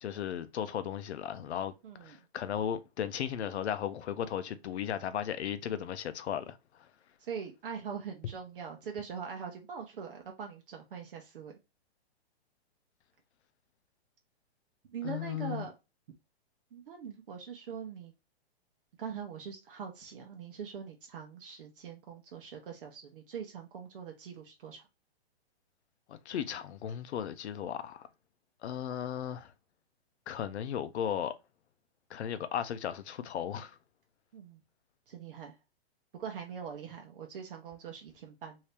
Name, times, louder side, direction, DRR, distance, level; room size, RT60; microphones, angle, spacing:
voice 1, 0.0-1.7 2.0-6.9 15.0-15.6 26.1-28.1 28.6-29.5 30.3-31.3 32.1-33.8, left 9 dB, 90° left, 0.6 m, -36 dB
voice 2, 1.8-2.2 7.2-11.5 14.9-15.7 16.7-18.1 19.0-24.8 34.3-34.6 35.1-35.5 36.1-38.6, right 7 dB, 55° right, 0.9 m, -42 dB
2.8 x 2.8 x 3.3 m
hypercardioid pair, 165°, 32 cm